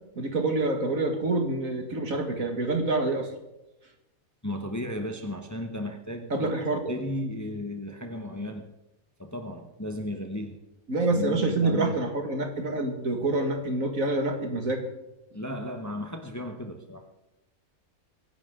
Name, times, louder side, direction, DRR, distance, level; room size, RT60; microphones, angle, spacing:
voice 1, 0.2-3.3 6.3-6.9 10.9-14.8, right 2 dB, 65° right, 4 dB, 2.4 m, -27 dB
voice 2, 4.4-6.5 6.9-8.7 9.2-10.6 11.1-12.0 15.3-17.1, left 1 dB, 15° left, 5 dB, 1.1 m, -35 dB
23.0 x 11.0 x 3.8 m, 0.94 s
omnidirectional pair, 1.5 m